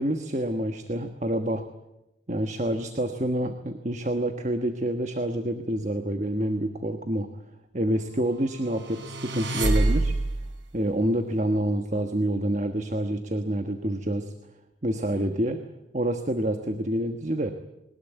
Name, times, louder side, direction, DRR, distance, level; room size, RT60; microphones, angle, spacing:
voice 1, 0.0-1.7 2.3-7.3 7.7-10.1 10.7-14.3 14.8-15.6 15.9-17.5, right 1 dB, 35° right, 7 dB, 1.3 m, -27 dB
sound 1, 8.8-10.5, right 2 dB, 70° right, 3.3 m, -26 dB
22.0 x 19.5 x 9.1 m, 0.94 s
head